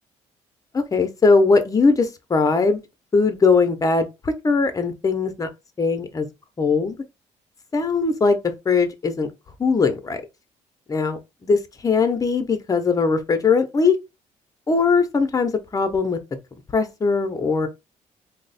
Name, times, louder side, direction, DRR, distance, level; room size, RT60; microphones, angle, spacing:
voice 1, 0.7-2.8 3.1-5.5 5.8-6.3 6.6-7.0 7.7-8.4 8.7-9.3 9.6-10.2 10.9-14.0 14.7-16.2 16.7-17.7, left 4 dB, 25° left, 0.6 m, -20 dB
2.9 x 2.1 x 4.0 m
cardioid pair, 115°, 13 cm